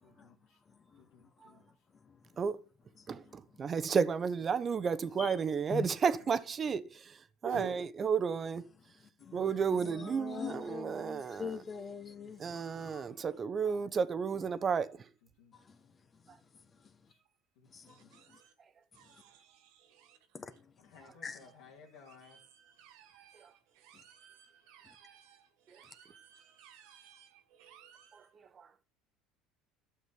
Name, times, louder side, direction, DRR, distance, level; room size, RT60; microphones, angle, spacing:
voice 1, 0.0-0.6 1.0-1.6 9.2-9.3 12.2-12.8 13.8-14.0 15.4-15.5 17.6-17.7 18.0-18.2 20.8-22.4, left 5 dB, 80° left, 2.3 m, -59 dB
voice 2, 3.1-7.2 7.4-8.6 9.3-11.6 12.4-14.9 28.1-28.2 28.6-28.7, right 6 dB, 35° right, 1.0 m, -32 dB
voice 3, 9.2-13.2 15.7-15.8 17.7-18.1 20.3-20.5 21.2-21.4, left 6 dB, 30° left, 1.2 m, -43 dB
voice 4, 17.9-18.5 18.9-20.2 21.0-21.6 22.1-28.3, right 7 dB, 75° right, 2.3 m, -53 dB
12.0 x 6.4 x 5.3 m
supercardioid pair, 85°, 0 cm